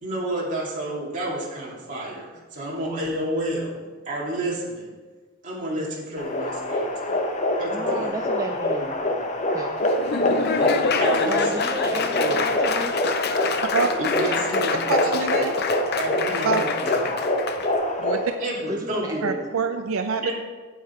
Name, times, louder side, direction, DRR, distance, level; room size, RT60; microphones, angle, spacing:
voice 1, 0.0-3.8 4.1-4.9 5.4-7.2 7.6-8.2 8.5-8.9 9.1-9.2 11.0-11.7 12.1-12.4 14.0-14.8 15.1-15.2 15.9-17.1 18.4-19.3 20.2-20.3, right 1 dB, 35° right, -4 dB, 2.4 m, -30 dB
sound 1, 6.2-18.3, left 1 dB, 35° left, 0.9 m, -25 dB
voice 2, 7.7-8.9 9.5-9.8 11.3-12.9 18.7-19.5, right 2 dB, 15° right, 4 dB, 0.4 m, -33 dB
Laughter / Applause, 9.8-17.7, left 5 dB, 50° left, 0.6 m, -27 dB
voice 3, 14.9-15.6 16.4-16.6 18.0-18.3 19.2-20.3, right 5 dB, 75° right, 7 dB, 0.5 m, -26 dB
9.4 x 8.2 x 4.4 m, 1.4 s
head